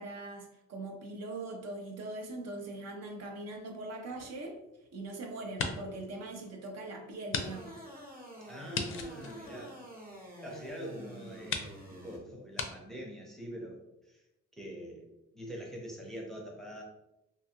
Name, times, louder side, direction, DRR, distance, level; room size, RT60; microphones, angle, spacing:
voice 1, 0.0-4.6 4.9-7.8, right 2 dB, 60° right, 2 dB, 0.6 m, -41 dB
sound 1, 4.1-5.0 5.4-6.0 6.4-6.5 7.3-7.5 7.7-7.8 8.7-10.3 11.0-11.1 11.5-11.7 12.5-12.7, left 5 dB, 45° left, 0.4 m, -37 dB
sound 2, 7.4-12.2, equal, 30° right, 0.9 m, -48 dB
voice 2, 8.5-9.8 10.4-14.2 14.6-16.8, equal, ahead, -2 dB, 0.6 m, -44 dB
2.6 x 2.3 x 2.8 m, 0.90 s
cardioid pair, 90°, 30 cm